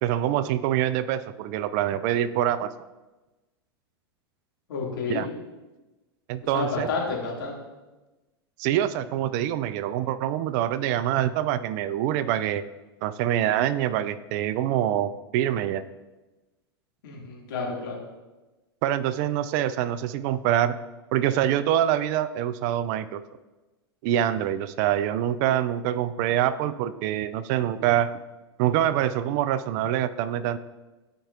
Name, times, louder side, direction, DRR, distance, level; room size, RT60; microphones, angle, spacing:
voice 1, 0.0-2.7 5.1-5.3 6.3-6.9 8.6-12.6 13.0-15.8 18.8-20.8 21.1-23.2 24.0-28.1 28.6-30.6, right 11 dB, 45° right, 14 dB, 0.4 m, -25 dB
voice 2, 4.7-5.3 6.5-7.6 17.0-18.0, left 4 dB, 60° left, -3 dB, 2.2 m, -30 dB
13.0 x 4.6 x 2.5 m, 1.1 s
figure-of-eight pair, 95°, 14 cm